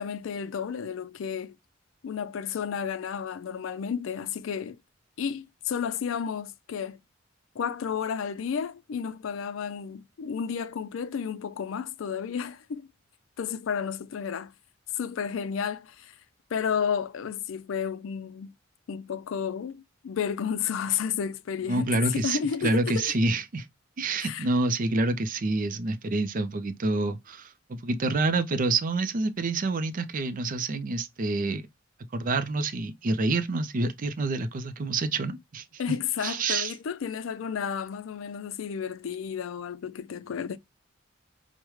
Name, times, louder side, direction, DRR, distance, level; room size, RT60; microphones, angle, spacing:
voice 1, 0.0-1.6 2.0-4.8 5.2-7.0 7.6-12.9 13.4-14.5 14.9-16.1 16.5-18.5 18.9-23.1 24.2-24.5 35.8-40.6, left 7 dB, 80° left, 0.4 m, -32 dB
voice 2, 21.7-23.7 24.0-31.7 32.1-35.6 36.2-36.7, right 2 dB, 45° right, 0.5 m, -27 dB
4.8 x 2.1 x 3.1 m
head